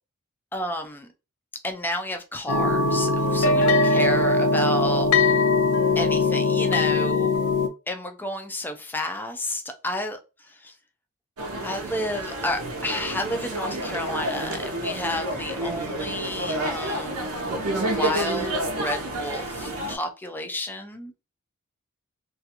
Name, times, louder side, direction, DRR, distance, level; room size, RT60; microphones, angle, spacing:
voice 1, 0.5-1.1 1.6-5.4 6.0-7.3 7.9-10.2 11.6-17.5 17.8-21.1, left 1 dB, 10° left, 0.3 m, -31 dB
sound 1, 2.5-7.7, left 3 dB, 75° left, 0.4 m, -21 dB
sound 2, 11.4-20.0, right 1 dB, 85° right, 0.6 m, -29 dB
2.4 x 2.3 x 2.7 m
head